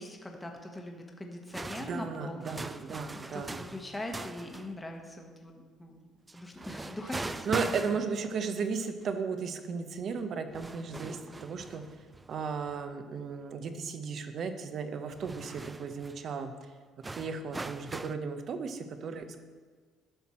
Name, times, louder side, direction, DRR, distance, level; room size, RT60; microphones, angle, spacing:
voice 1, 0.0-2.6 3.3-6.0 6.3-7.7, left 1 dB, 15° left, 2 dB, 1.1 m, -42 dB
sound 1, 1.5-4.8 6.3-8.4 9.0-9.1 10.2-10.3 10.5-12.8 13.2-13.3 15.1-16.2 17.0-18.1, right 2 dB, 20° right, 0.3 m, -41 dB
voice 2, 1.8-3.6 7.5-11.8 12.3-16.5 17.1-19.4, right 5 dB, 55° right, 8 dB, 0.8 m, -35 dB
10.0 x 5.9 x 4.3 m, 1.5 s
supercardioid pair, 85°, 0 cm